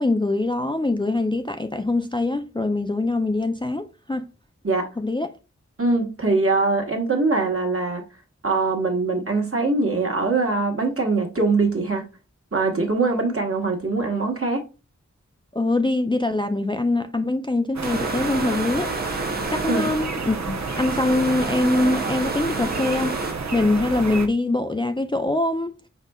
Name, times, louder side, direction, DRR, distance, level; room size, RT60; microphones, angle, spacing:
voice 1, 0.0-4.3 5.0-5.3 15.5-18.9 19.5-23.2 23.5-25.7, left 2 dB, 15° left, 0.4 m, -23 dB
voice 2, 5.8-8.0 8.4-12.0 12.5-14.6 19.7-19.9, right 3 dB, 50° right, 1.3 m, -22 dB
sound 1, 17.7-24.3, right 4 dB, 70° right, 0.8 m, -30 dB
sound 2, 17.8-23.3, right 2 dB, 30° right, 0.8 m, -31 dB
5.2 x 4.1 x 2.3 m
wide cardioid pair, 50°, 29 cm